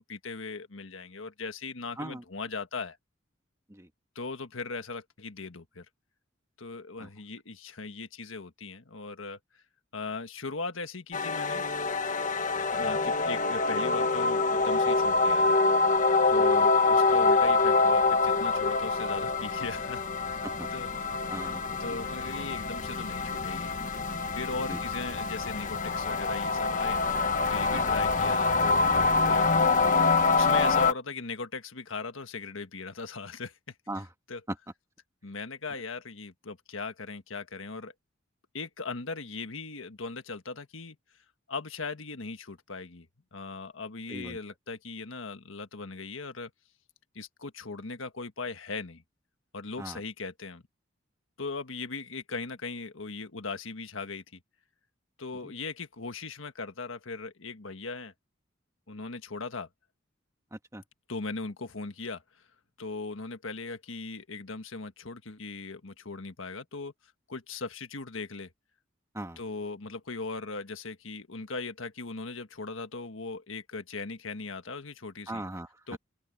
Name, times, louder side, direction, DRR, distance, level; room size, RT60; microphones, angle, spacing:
voice 1, 0.0-3.0 4.1-5.8 6.6-9.6 9.9-11.7 12.7-15.6 16.3-20.4 20.7-20.9 21.8-23.7 24.3-27.0 27.5-30.0 30.3-33.7 34.3-34.4 35.2-37.9 38.5-41.0 41.5-43.1 43.3-46.5 47.1-49.0 49.5-50.6 51.4-54.4 55.2-58.1 58.9-59.7 61.1-62.2 62.8-66.9 67.3-68.5 69.4-75.4 75.9-76.0, left 3 dB, 90° left, 1.6 m, -38 dB
sound 1, 11.1-30.9, left 3 dB, 40° left, 1.2 m, -25 dB
voice 2, 21.3-22.0 24.7-24.8 27.7-27.9 33.9-34.1 34.5-34.6 44.1-44.4 49.8-50.0 55.4-55.5 60.5-60.8 69.1-69.4 75.3-75.8, right 1 dB, 15° right, 1.8 m, -39 dB
open air
head